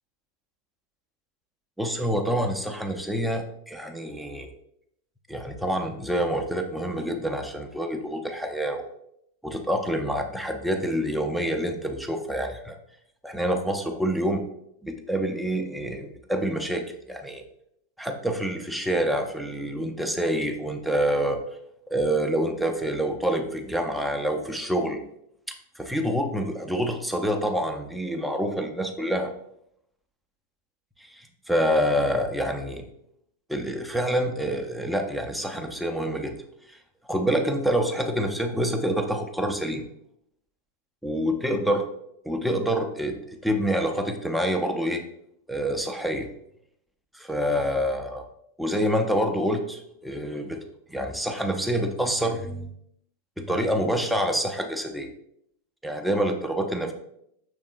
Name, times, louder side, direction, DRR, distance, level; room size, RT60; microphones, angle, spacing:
voice 1, 1.8-4.5 5.3-8.8 9.4-12.8 13.2-14.5 14.8-17.4 18.0-21.4 21.9-25.0 25.8-29.3 31.0-32.9 33.5-36.4 36.7-36.8 37.0-39.9 41.0-41.8 42.2-45.0 45.5-46.3 47.1-48.2 48.6-50.6 50.9-52.7 53.4-55.1 55.8-56.9, equal, ahead, 4 dB, 0.5 m, -27 dB
6.0 x 3.5 x 2.5 m, 0.75 s
figure-of-eight pair, 90°, 0 cm